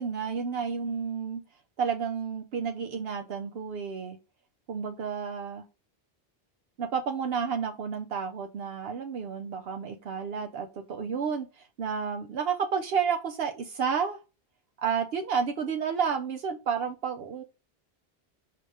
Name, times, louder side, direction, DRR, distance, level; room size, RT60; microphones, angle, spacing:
voice 1, 0.0-1.4 1.8-4.2 4.7-5.6 6.8-14.2 14.8-17.4, right 6 dB, 70° right, 5 dB, 0.8 m, -31 dB
5.3 x 2.8 x 3.4 m, 0.30 s
omnidirectional pair, 1.1 m